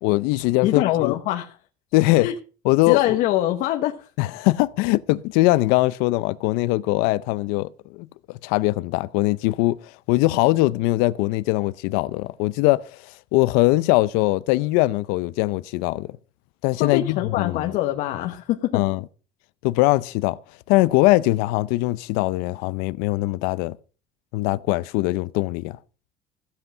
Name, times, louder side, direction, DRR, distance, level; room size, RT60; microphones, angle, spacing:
voice 1, 0.0-1.2 1.9-2.3 2.6-3.2 4.2-16.1 16.6-17.6 18.7-19.0 19.6-20.4 20.7-23.8 24.3-25.8, left 19 dB, 85° left, 0.6 m, -21 dB
voice 2, 0.6-1.6 2.2-2.3 2.9-4.1 16.8-18.8, left 14 dB, 60° left, 1.1 m, -23 dB
15.0 x 8.1 x 5.6 m
cardioid pair, 165°, 15 cm